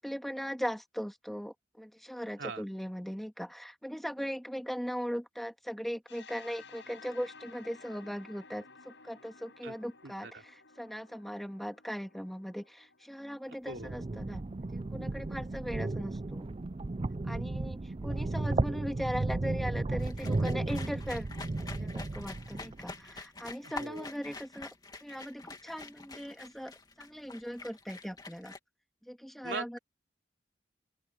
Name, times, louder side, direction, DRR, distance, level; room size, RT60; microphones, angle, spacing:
voice 1, 0.0-16.5 17.2-21.3 21.7-28.5 29.0-29.8, equal, ahead, 2.0 m, -39 dB
sound 1, 6.1-13.9, left 4 dB, 80° left, 5.5 m, -55 dB
voice 2, 10.0-10.4 13.7-13.9 23.6-24.0 29.4-29.8, right 4 dB, 75° right, 3.0 m, -41 dB
sound 2, 13.7-22.9, right 2 dB, 30° right, 0.5 m, -34 dB
sound 3, 20.0-28.6, left 3 dB, 20° left, 2.4 m, -47 dB
open air
head